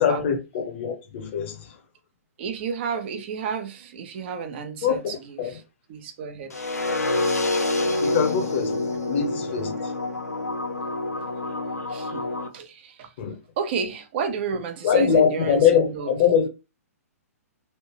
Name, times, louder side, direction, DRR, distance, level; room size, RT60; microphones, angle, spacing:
voice 1, 0.0-1.8 4.8-5.6 8.0-9.9 13.2-13.4 14.8-16.5, left 7 dB, 45° left, 0.9 m, -23 dB
voice 2, 2.4-5.6 5.9-6.6 11.9-12.2 12.5-13.1 13.6-16.1, right 6 dB, 45° right, 0.8 m, -31 dB
sound 1, 6.5-12.5, left 2 dB, 85° left, 0.7 m, -27 dB
3.3 x 2.7 x 3.1 m
figure-of-eight pair, 120°, 8 cm